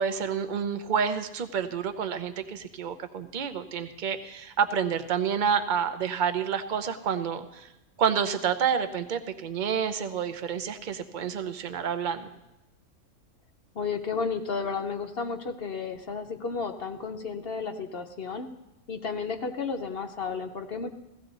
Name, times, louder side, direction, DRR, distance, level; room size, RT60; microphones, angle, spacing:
voice 1, 0.0-7.7 8.0-12.3, right 7 dB, 40° right, 9 dB, 0.8 m, -29 dB
voice 2, 13.7-18.5 18.9-20.9, left 5 dB, 50° left, 6 dB, 0.9 m, -32 dB
17.0 x 14.5 x 4.0 m, 0.94 s
omnidirectional pair, 1.5 m